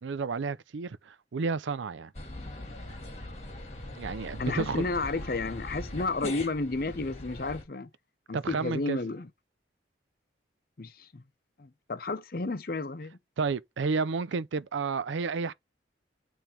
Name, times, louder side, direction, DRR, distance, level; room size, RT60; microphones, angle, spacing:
voice 1, 0.0-2.1 3.9-4.9 8.3-9.0 13.4-15.5, right 4 dB, 80° right, 0.5 m, -31 dB
sound 1, 2.1-7.6, left 1 dB, 35° left, 1.4 m, -41 dB
voice 2, 4.4-7.9 8.3-9.3 10.8-11.2 11.6-13.2, left 3 dB, 50° left, 0.7 m, -32 dB
9.0 x 3.4 x 4.4 m
head